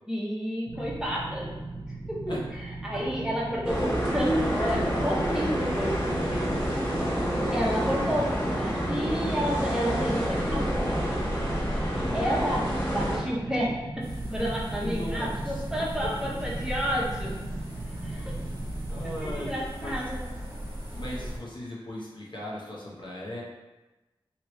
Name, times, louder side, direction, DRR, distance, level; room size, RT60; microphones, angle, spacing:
voice 1, 0.1-1.5 2.1-6.9 7.5-11.0 12.1-17.4 18.0-18.3 19.2-20.2, equal, 5° right, -5 dB, 0.7 m, -31 dB
sound 1, 0.7-19.5, right 2 dB, 65° right, 0.6 m, -38 dB
sound 2, 3.6-13.2, equal, 25° left, 1.1 m, -28 dB
voice 2, 5.9-6.8 8.0-8.3 11.9-12.5 14.7-16.1 18.9-19.5 19.8-20.0 20.9-23.4, left 1 dB, 55° left, -5 dB, 0.8 m, -38 dB
sound 3, 14.0-21.4, equal, 25° right, 0.9 m, -37 dB
3.0 x 2.7 x 3.0 m, 1.1 s
wide cardioid pair, 85°, 9 cm